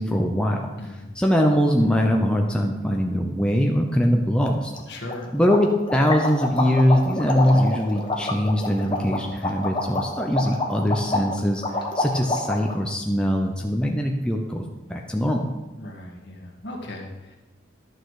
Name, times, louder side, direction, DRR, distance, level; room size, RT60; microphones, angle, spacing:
voice 1, 0.0-4.7 5.3-15.5, equal, 5° left, 1 dB, 0.7 m, -22 dB
voice 2, 0.8-1.1 4.9-5.3 15.8-17.4, left 1 dB, 70° left, 1 dB, 1.8 m, -37 dB
sound 1, 4.7-4.8 5.1-5.2 5.5-12.8, left 2 dB, 25° left, 1.0 m, -27 dB
11.0 x 6.7 x 4.8 m, 1.1 s
head